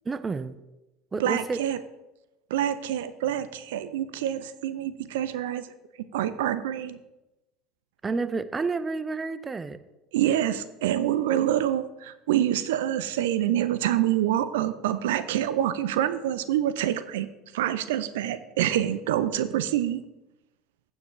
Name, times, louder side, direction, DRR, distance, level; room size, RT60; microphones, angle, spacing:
voice 1, 0.1-0.6 1.1-1.6 8.0-9.8, right 4 dB, 20° right, 14 dB, 0.6 m, -30 dB
voice 2, 1.2-1.8 2.5-5.7 6.1-7.0 10.1-17.3 17.5-20.0, right 11 dB, 65° right, 14 dB, 0.5 m, -26 dB
15.5 x 7.3 x 3.1 m, 0.99 s
figure-of-eight pair, 70°, 0 cm